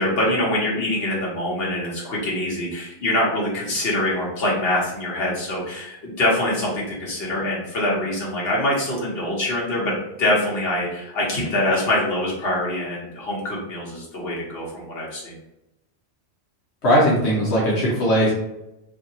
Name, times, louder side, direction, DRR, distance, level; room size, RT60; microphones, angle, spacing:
voice 1, 0.0-15.3, left 1 dB, 65° left, -5 dB, 1.2 m, -24 dB
voice 2, 16.8-18.3, equal, 80° left, -5 dB, 1.1 m, -18 dB
2.8 x 2.7 x 2.7 m, 0.90 s
omnidirectional pair, 1.1 m